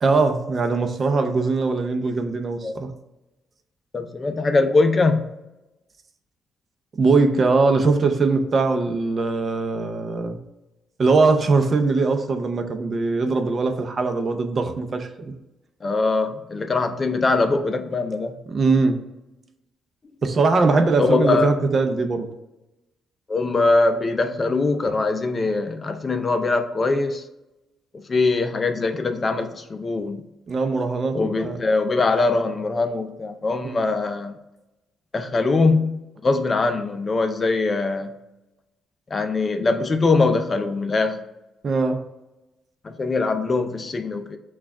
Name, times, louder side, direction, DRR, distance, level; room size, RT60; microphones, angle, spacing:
voice 1, 0.0-2.9 6.9-10.4 11.0-15.1 18.5-19.0 20.2-22.3 30.5-31.6 33.6-33.8 41.6-42.0, right 3 dB, 40° right, 6 dB, 0.6 m, -21 dB
voice 2, 3.9-5.3 15.8-18.3 21.0-21.5 23.3-27.2 27.9-30.2 31.1-34.4 35.1-38.2 39.1-41.2 42.8-44.4, left 3 dB, 35° left, 7 dB, 0.4 m, -22 dB
5.9 x 2.4 x 3.5 m, 0.97 s
cardioid pair, 90°, 0 cm